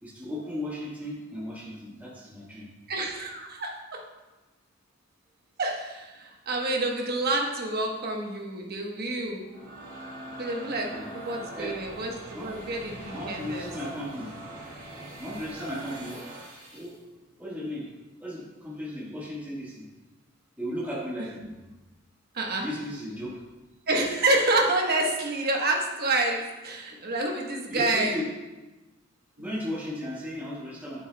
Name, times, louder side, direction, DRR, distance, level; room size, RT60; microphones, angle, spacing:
voice 1, 0.0-2.7 8.8-8.9 10.8-11.1 11.5-11.8 12.3-12.7 13.0-14.3 14.9-16.3 16.7-16.9 17.4-17.8 18.2-19.8 20.6-21.6 22.6-23.4 27.7-28.3 29.4-31.1, left 1 dB, 10° right, -7 dB, 1.4 m, -36 dB
voice 2, 2.9-4.0 5.6-9.4 10.4-12.1 12.4-13.7 22.3-22.7 23.9-28.1 29.4-29.5, right 2 dB, 50° right, 1 dB, 1.1 m, -28 dB
sound 1, 9.3-17.0, right 1 dB, 70° right, 2.5 m, -42 dB
9.4 x 8.0 x 2.2 m, 1.1 s
head